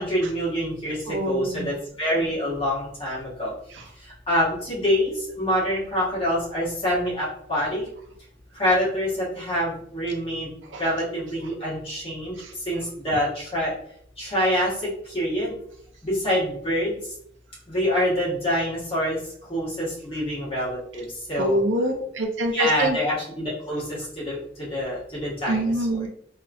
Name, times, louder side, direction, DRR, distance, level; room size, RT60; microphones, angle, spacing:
voice 1, 0.0-3.5 4.3-7.8 8.5-10.5 10.8-12.3 12.6-13.7 14.2-15.5 16.0-17.0 17.7-19.2 19.5-21.6 22.5-26.0, equal, 30° left, -7 dB, 1.4 m, -26 dB
voice 2, 1.1-1.7 3.7-3.9 10.7-10.9 12.4-12.5 21.4-23.0 25.5-26.1, right 1 dB, 80° right, 3 dB, 0.6 m, -25 dB
3.1 x 2.9 x 2.5 m, 0.70 s
head